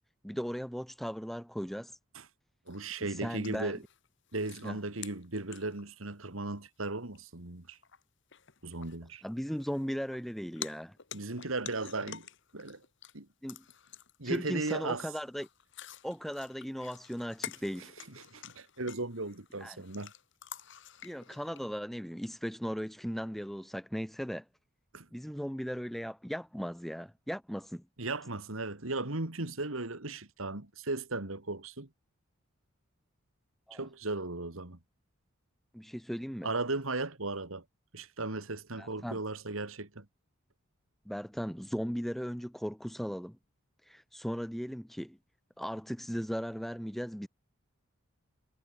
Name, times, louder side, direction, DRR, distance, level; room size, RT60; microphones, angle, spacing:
voice 1, 0.2-1.9 3.0-3.8 4.6-4.8 9.2-11.0 13.4-13.6 14.2-15.5 16.0-17.9 19.6-19.8 21.0-24.4 25.1-27.8 33.7-33.9 35.7-36.5 38.8-39.2 41.1-43.4 43.9-45.2 45.6-47.3, equal, ahead, 0.7 m, -37 dB
sound 1, 2.7-6.1 6.7-6.8 7.2-7.3 7.7-8.0 8.3-10.3 10.6-13.1 13.5-21.6, left 9 dB, 60° left, 2.1 m, -49 dB
voice 2, 2.7-3.8 4.3-7.8 8.6-9.2 11.1-12.3 12.5-12.8 13.1-13.3 14.2-15.1 18.2-20.1 24.9-25.1 28.0-31.9 33.7-34.8 36.4-37.6 37.9-40.1, right 2 dB, 70° right, 2.4 m, -36 dB
head